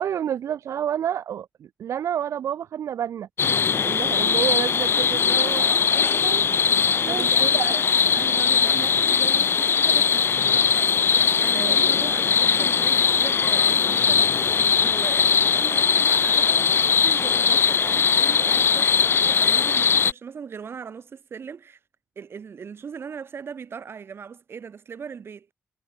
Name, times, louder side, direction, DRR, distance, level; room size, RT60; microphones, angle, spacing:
voice 1, 0.0-3.3 3.8-7.8 11.5-11.8, right 9 dB, 75° right, 0.4 m, -30 dB
sound 1, 3.4-20.1, left 6 dB, 50° left, 0.7 m, -20 dB
voice 2, 7.1-7.8 8.1-21.8 22.1-25.5, right 6 dB, 50° right, 1.4 m, -39 dB
sound 2, 12.7-20.0, left 1 dB, 10° left, 5.2 m, -47 dB
wide cardioid pair, 135°, 5 cm